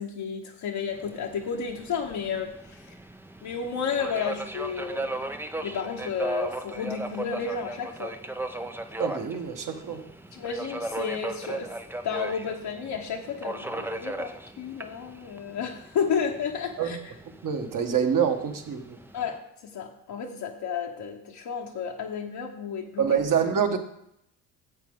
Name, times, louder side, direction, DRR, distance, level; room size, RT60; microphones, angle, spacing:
voice 1, 0.0-2.5 3.4-5.3 5.6-8.2 10.3-11.7 12.0-17.0 19.1-23.2, left 6 dB, 60° left, -1 dB, 1.4 m, -32 dB
Subway metro underground, 0.9-19.4, right 1 dB, 5° right, 0.7 m, -37 dB
voice 2, 9.0-10.1 16.8-17.0 17.4-19.0 23.0-23.8, right 7 dB, 45° right, 4 dB, 1.7 m, -26 dB
11.5 x 7.5 x 3.9 m, 0.75 s
hypercardioid pair, 60°, 44 cm